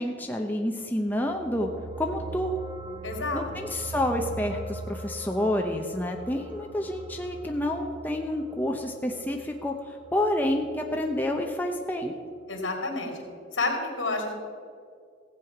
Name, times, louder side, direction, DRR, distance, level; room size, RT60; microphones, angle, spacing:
voice 1, 0.0-1.7 2.0-2.5 3.3-12.2, left 1 dB, 10° left, 2 dB, 0.7 m, -29 dB
sound 1, 1.0-11.7 12.0-12.2, right 2 dB, 20° right, 0.9 m, -41 dB
voice 2, 3.0-3.4 12.5-13.2 13.5-14.3, left 3 dB, 80° left, 2 dB, 2.7 m, -29 dB
16.0 x 8.2 x 5.8 m, 2.3 s
head